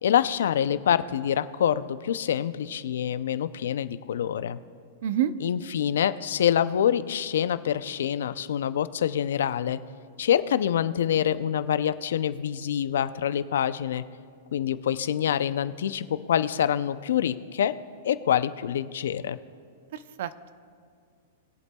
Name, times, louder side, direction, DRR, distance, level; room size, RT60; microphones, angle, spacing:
voice 1, 0.0-4.6 5.4-9.8 10.2-14.0 14.5-17.8 18.0-19.4, left 9 dB, 80° left, 13 dB, 0.5 m, -26 dB
voice 2, 5.0-5.3 19.9-20.5, right 10 dB, 65° right, 14 dB, 0.5 m, -28 dB
21.0 x 8.2 x 2.3 m, 2.2 s
hypercardioid pair, 150°, 0 cm